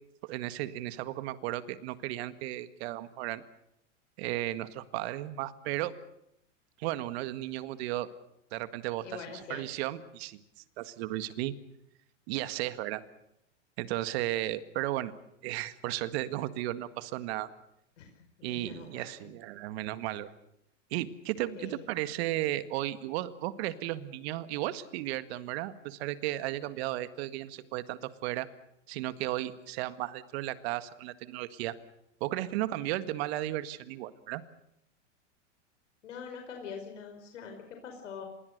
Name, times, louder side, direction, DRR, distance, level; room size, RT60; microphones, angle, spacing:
voice 1, 0.2-3.4 4.2-5.9 6.8-8.1 8.5-9.1 9.5-10.4 10.8-11.5 12.3-13.0 13.8-15.1 15.4-17.5 18.4-20.3 20.9-28.5 28.9-31.7 32.2-34.4, right 15 dB, 55° right, 12 dB, 1.8 m, -34 dB
voice 2, 9.0-9.7 18.0-19.3 21.6-21.9 36.0-38.2, left 6 dB, 80° left, 4 dB, 5.1 m, -44 dB
26.5 x 22.0 x 6.7 m, 0.81 s
hypercardioid pair, 125°, 37 cm